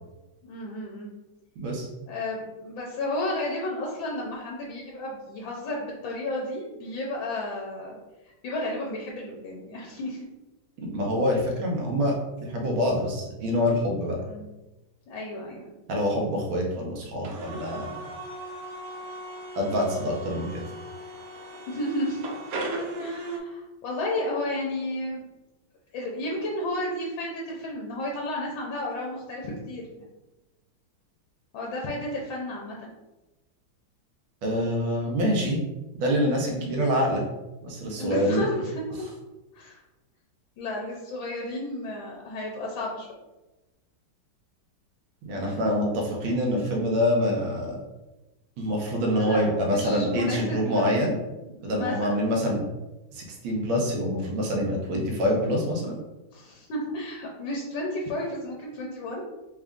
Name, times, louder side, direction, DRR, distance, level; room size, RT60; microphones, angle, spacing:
voice 1, 0.4-1.1 2.1-8.0 8.4-10.3 14.3-14.4 15.1-15.7 21.7-22.2 23.0-25.2 25.9-29.8 31.5-32.9 36.6-36.8 38.0-38.7 39.5-39.8 40.6-43.1 45.3-45.6 49.1-52.3 56.3-59.3, left 1 dB, 80° left, -2 dB, 1.5 m, -32 dB
voice 2, 1.6-1.9 10.9-14.2 15.9-17.9 19.6-20.6 34.4-35.6 36.0-37.2 37.6-38.5 45.2-47.8 48.6-51.1 51.6-52.6 53.1-56.0, equal, 85° right, -1 dB, 1.7 m, -26 dB
sound 1, 17.2-23.4, right 1 dB, 70° right, 0.9 m, -37 dB
4.1 x 2.4 x 3.5 m, 1.0 s
omnidirectional pair, 2.1 m